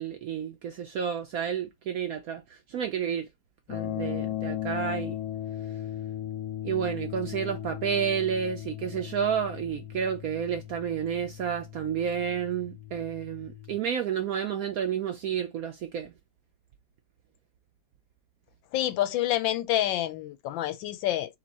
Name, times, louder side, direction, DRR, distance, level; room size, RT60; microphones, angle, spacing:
voice 1, 0.0-3.3 3.7-5.2 6.6-16.1, right 8 dB, 75° right, 0.8 m, -30 dB
sound 1, 3.7-13.8, left 12 dB, 70° left, 1.0 m, -37 dB
voice 2, 18.7-21.4, left 13 dB, 90° left, 1.4 m, -28 dB
4.4 x 2.2 x 4.1 m
omnidirectional pair, 2.0 m